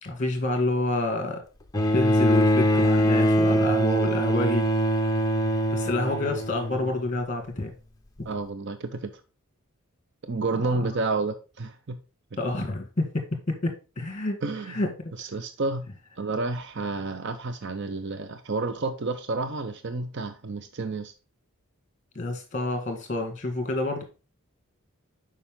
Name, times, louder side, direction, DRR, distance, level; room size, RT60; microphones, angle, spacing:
voice 1, 0.0-1.4 1.9-4.7 5.7-7.7 12.4-14.4 14.7-15.1 22.2-24.0, left 2 dB, 30° left, 1.8 m, -28 dB
Bowed string instrument, 1.7-7.2 8.3-8.4, equal, 15° left, 0.7 m, -23 dB
voice 2, 8.3-9.1 10.2-12.0 14.4-14.8 15.2-15.9 16.2-21.1, right 3 dB, 50° right, 0.6 m, -30 dB
7.0 x 5.0 x 3.6 m
head